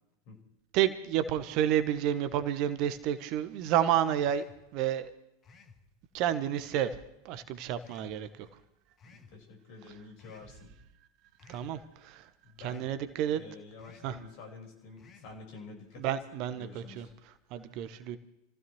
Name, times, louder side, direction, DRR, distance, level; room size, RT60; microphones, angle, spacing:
voice 1, 0.7-4.4 4.7-5.1 6.1-7.0 7.2-8.5 11.5-12.3 12.6-13.4 14.0-14.2 16.0-18.2, right 10 dB, 45° right, 12 dB, 1.1 m, -30 dB
sound 1, 4.2-4.7 5.4-5.8 6.6-7.0 7.8-8.2 9.0-9.3 10.2-10.6 11.4-11.8 12.6-13.0 13.8-14.2 15.0-15.4, left 4 dB, 30° left, 1.6 m, -56 dB
voice 2, 9.0-10.7 12.4-12.9 13.3-16.1 16.6-17.1, left 4 dB, 50° left, 2 dB, 4.8 m, -49 dB
27.5 x 15.5 x 3.1 m, 0.88 s
figure-of-eight pair, 85°, 0 cm